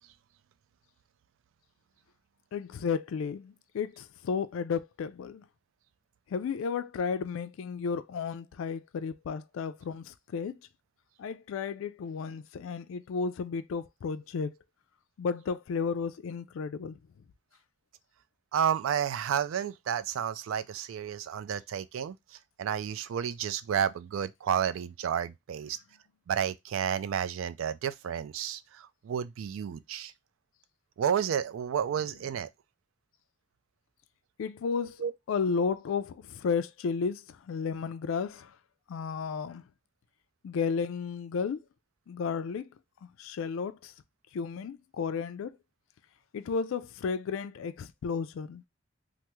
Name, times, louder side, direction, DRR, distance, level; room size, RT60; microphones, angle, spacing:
voice 1, 2.5-5.4 6.3-10.6 11.2-14.5 15.2-17.0 34.4-35.0 35.3-38.5 38.9-39.6 40.4-41.6 42.1-42.7 43.2-43.9 44.3-45.6 46.3-48.6, left 5 dB, 80° left, 0.3 m, -33 dB
voice 2, 18.5-25.8 26.3-30.1 31.0-32.5 35.0-35.1, right 8 dB, 80° right, 0.3 m, -31 dB
3.4 x 2.0 x 2.9 m
head